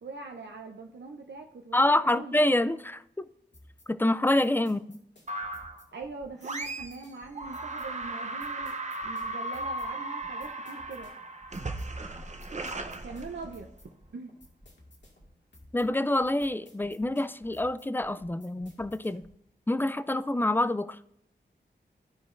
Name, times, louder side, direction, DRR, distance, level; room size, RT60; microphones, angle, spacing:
voice 1, 0.0-2.4 4.4-4.5 5.9-8.8 9.0-11.1 13.0-13.7 14.1-14.3, right 3 dB, 70° right, 0.7 m, -42 dB
voice 2, 1.7-3.3 3.9-4.8 15.7-19.2 19.7-21.0, left 1 dB, 10° left, 0.4 m, -26 dB
sound 1, 3.5-19.4, left 1 dB, 70° left, 2.1 m, -58 dB
sound 2, 5.3-5.8 6.4-7.1 7.4-13.8, right 2 dB, 40° right, 0.8 m, -36 dB
sound 3, 5.4-5.7 6.0-6.3 6.6-6.9 7.2-7.5 7.8-8.1 8.4-8.7 9.0-9.3 9.6-9.9 10.2-10.5 10.8-11.1 11.4-11.7 12.0-12.3 12.6-12.9 13.2-13.5 13.8-14.1 14.4-14.7 15.0-15.3 15.6-15.9 16.2-16.5 16.8-17.1 17.4-17.7 18.0-18.3 18.6-18.9 19.2-19.3, right 1 dB, 15° right, 1.4 m, -56 dB
14.5 x 4.9 x 2.6 m
wide cardioid pair, 60°, 19 cm